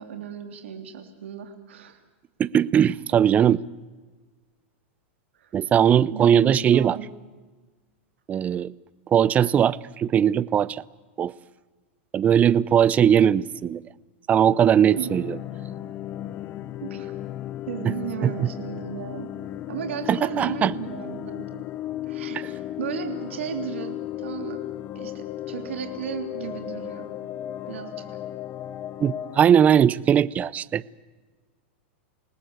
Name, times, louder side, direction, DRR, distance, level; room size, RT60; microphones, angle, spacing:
voice 1, 0.0-2.0 5.4-5.5 6.1-7.1 15.0-15.2 15.8-15.9 16.8-17.1 17.7-19.3 19.7-21.6 22.1-24.6 24.9-27.1 27.7-27.9, right 9 dB, 80° right, 5 dB, 3.1 m, -35 dB
voice 2, 2.4-3.6 5.5-7.0 8.3-8.7 9.1-10.8 11.2-11.3 12.1-13.8 14.3-15.4 18.2-18.5 20.1-20.7 22.3-22.5 29.0-30.8, right 9 dB, 20° right, 20 dB, 0.7 m, -19 dB
sound 1, 14.4-29.4, left 12 dB, 30° left, 1.0 m, -35 dB
27.5 x 19.0 x 8.1 m, 1.3 s
supercardioid pair, 135°, 7 cm